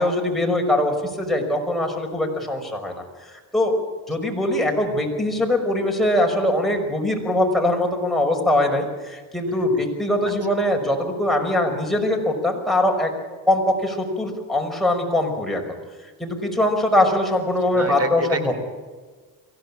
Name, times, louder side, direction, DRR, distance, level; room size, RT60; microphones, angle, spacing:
voice 1, 0.0-3.8 4.1-13.1 13.5-15.6 16.2-18.5, left 1 dB, ahead, 1 dB, 5.6 m, -22 dB
voice 2, 17.7-18.6, right 3 dB, 40° right, 10 dB, 3.7 m, -29 dB
24.0 x 16.5 x 8.8 m, 1.4 s
cardioid pair, 90°, 37 cm